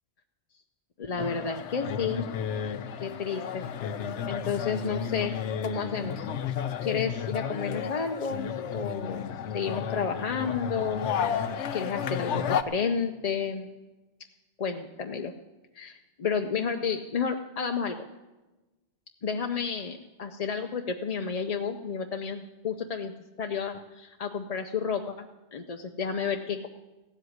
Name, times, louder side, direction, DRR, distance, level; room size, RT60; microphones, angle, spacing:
voice 1, 1.0-2.3 3.0-3.6 4.3-5.4 5.6-6.3 6.8-9.3 9.5-13.7 14.6-15.3 15.7-18.0 19.2-23.1 23.4-26.7, left 6 dB, 40° left, 5 dB, 0.6 m, -31 dB
sound 1, 1.2-12.6, left 8 dB, 80° left, 1.0 m, -32 dB
15.5 x 7.9 x 9.4 m, 1.2 s
omnidirectional pair, 1.2 m